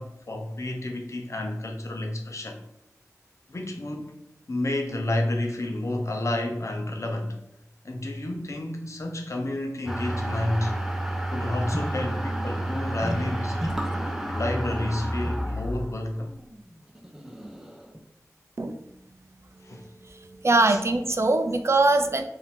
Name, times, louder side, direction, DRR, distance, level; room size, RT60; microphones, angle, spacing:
voice 1, 0.0-2.6 3.5-4.1 4.5-7.4 7.8-10.7 11.3-13.7 14.3-16.3 19.6-19.9 20.7-20.8, left 1 dB, 60° left, 3 dB, 0.7 m, -30 dB
sound 1, 9.9-18.0, right 1 dB, 5° right, 0.7 m, -30 dB
voice 2, 20.4-22.2, right 2 dB, 50° right, 7 dB, 0.4 m, -21 dB
4.7 x 2.7 x 3.6 m, 0.78 s
wide cardioid pair, 65°, 6 cm